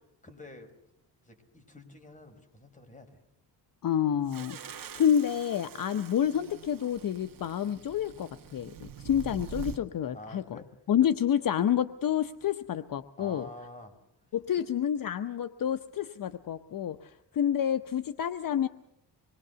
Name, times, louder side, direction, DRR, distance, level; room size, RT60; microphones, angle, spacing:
voice 1, 0.2-0.7 1.2-3.2 10.1-10.7 13.2-14.0 14.5-14.6, left 1 dB, 20° left, 6 dB, 5.1 m, -48 dB
voice 2, 3.8-10.6 10.9-13.5 14.3-18.7, left 9 dB, 55° left, 10 dB, 1.0 m, -29 dB
sound 1, 4.3-9.8, right 7 dB, 55° right, 1.9 m, -44 dB
26.0 x 22.0 x 7.0 m, 0.81 s
cardioid pair, 110°, 40 cm